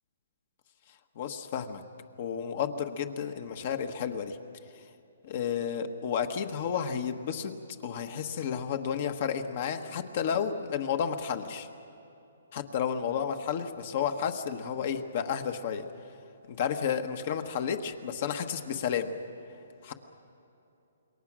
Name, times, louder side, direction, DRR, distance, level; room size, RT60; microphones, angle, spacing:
voice 1, 1.1-1.8 2.2-4.4 5.2-7.5 7.8-11.7 12.5-15.8 16.5-19.1 19.8-19.9, left 7 dB, 40° left, 7 dB, 1.2 m, -31 dB
27.5 x 22.0 x 6.2 m, 2.8 s
hypercardioid pair, 165°, 0 cm